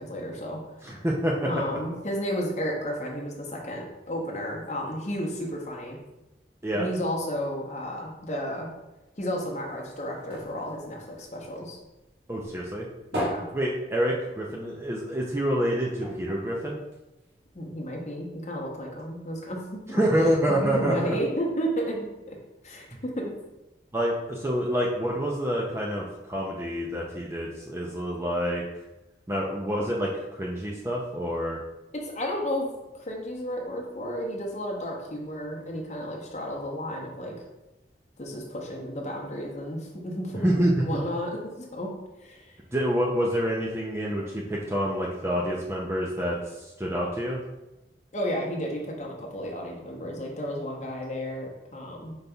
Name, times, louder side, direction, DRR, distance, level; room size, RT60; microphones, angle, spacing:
voice 1, 0.0-1.0 1.4-6.0 6.7-8.7 9.2-11.8 13.1-13.5 17.5-19.6 20.5-22.3 22.6-23.3 32.0-32.7 32.9-37.4 38.2-41.9 42.2-42.6 48.1-52.2, equal, 40° left, -1 dB, 0.7 m, -32 dB
voice 2, 0.8-1.5 6.6-6.9 12.3-12.9 13.5-16.8 19.9-21.1 23.9-28.6 29.3-31.6 40.3-40.7 42.7-47.4, equal, 15° right, -3 dB, 0.4 m, -27 dB
sound 1, 9.4-12.0 12.4-14.7 15.0-15.1 15.4-15.5 16.0-17.5 18.1-18.2, equal, 90° right, 1.5 m, -37 dB
5.2 x 4.0 x 2.3 m, 0.99 s
head